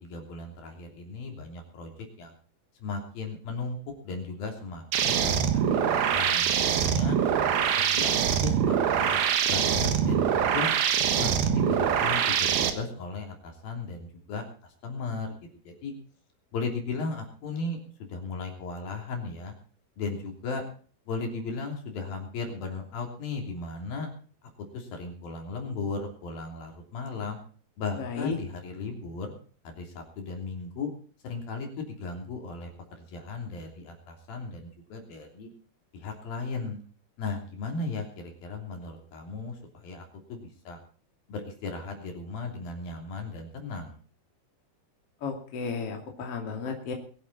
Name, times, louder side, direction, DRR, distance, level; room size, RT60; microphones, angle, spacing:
voice 1, 0.0-2.3 2.8-3.8 4.0-7.2 7.8-9.2 9.5-10.7 11.2-15.3 15.6-15.9 16.5-19.5 20.0-20.6 21.1-24.1 24.7-27.4 27.8-29.3 29.6-30.9 31.2-35.5 35.9-36.8 37.2-40.8 41.3-44.0, left 4 dB, 65° left, 2 dB, 5.0 m, -36 dB
sound 1, 4.9-12.7, right 8 dB, 70° right, 3.3 m, -24 dB
voice 2, 28.0-28.3 45.2-46.9, left 5 dB, 40° left, 2 dB, 3.3 m, -33 dB
22.5 x 11.0 x 4.2 m, 0.41 s
omnidirectional pair, 4.5 m